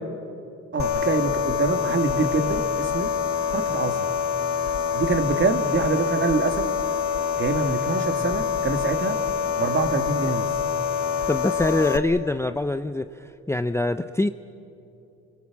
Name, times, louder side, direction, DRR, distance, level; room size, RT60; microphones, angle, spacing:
voice 1, 0.7-3.1 3.5-4.1 4.9-6.7 7.4-9.2 9.6-10.5, right 4 dB, 40° right, 7 dB, 2.3 m, -25 dB
sound 1, 0.8-12.0, left 7 dB, 70° left, 1.6 m, -26 dB
voice 2, 11.3-14.3, left 2 dB, 10° left, 10 dB, 0.6 m, -24 dB
29.0 x 23.0 x 7.4 m, 2.8 s
cardioid pair, 90°, 30 cm